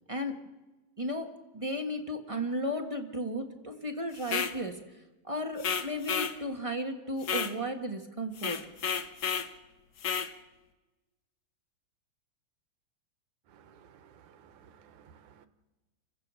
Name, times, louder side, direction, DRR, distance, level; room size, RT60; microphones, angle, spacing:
voice 1, 1.0-4.8 5.2-8.6, equal, 20° right, 0.9 m, -34 dB
sound 1, 4.2-4.6 5.6-6.4 7.2-7.6 8.4-9.5 10.0-10.3, left 7 dB, 90° left, 0.8 m, -31 dB
voice 2, 13.5-15.5, right 7 dB, 80° right, 2.4 m, -57 dB
29.5 x 15.5 x 6.5 m
omnidirectional pair, 3.3 m